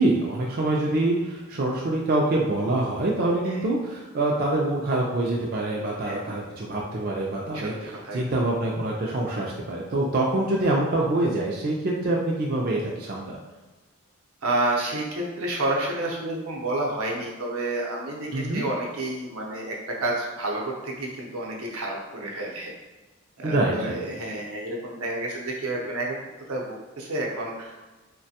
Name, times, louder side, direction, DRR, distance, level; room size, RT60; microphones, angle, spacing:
voice 1, 0.0-13.4 18.3-18.6 23.4-24.0, right 2 dB, 45° right, -2 dB, 0.3 m, -25 dB
voice 2, 6.0-6.4 7.5-8.2 14.4-19.8 20.0-22.7 23.4-26.2 26.5-27.7, right 2 dB, 85° right, -1 dB, 0.7 m, -30 dB
3.1 x 2.2 x 2.7 m, 1.2 s
head